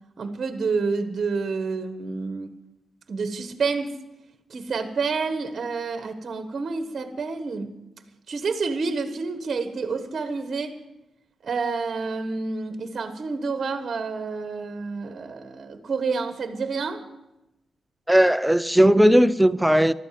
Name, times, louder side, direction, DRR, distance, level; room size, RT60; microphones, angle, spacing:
voice 1, 0.2-2.5 3.1-3.9 4.5-7.7 8.3-10.7 11.4-17.0, right 4 dB, 45° right, 1.3 m, -28 dB
voice 2, 18.1-19.9, equal, 5° right, 0.6 m, -17 dB
14.5 x 12.5 x 7.5 m
cardioid pair, 100°, 0 cm